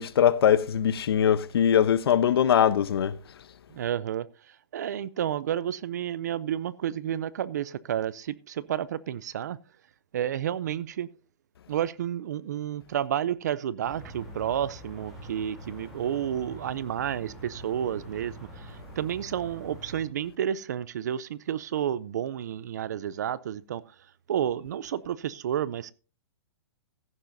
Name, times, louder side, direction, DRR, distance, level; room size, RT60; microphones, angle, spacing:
voice 1, 0.0-3.2, left 9 dB, 60° left, 0.8 m, -22 dB
voice 2, 3.7-9.6 10.1-11.1 11.7-23.8 24.3-25.9, right 10 dB, 40° right, 0.4 m, -31 dB
sound 1, 13.8-20.0, right 1 dB, 5° right, 3.1 m, -45 dB
15.0 x 11.0 x 2.6 m
hypercardioid pair, 175°, 14 cm